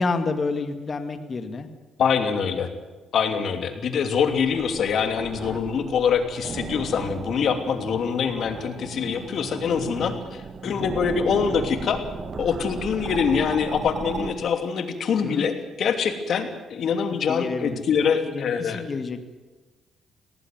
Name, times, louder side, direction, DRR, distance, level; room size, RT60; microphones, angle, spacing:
voice 1, 0.0-1.7 10.6-10.9 15.2-15.5 17.3-17.8 18.3-19.2, left 3 dB, 40° left, 8 dB, 2.1 m, -29 dB
voice 2, 2.0-2.7 3.1-12.0 12.4-18.9, left 6 dB, 65° left, 7 dB, 2.9 m, -24 dB
sound 1, 4.2-14.3, right 5 dB, 45° right, 2.0 m, -36 dB
18.5 x 18.0 x 9.4 m, 1.2 s
cardioid pair, 90°, 0 cm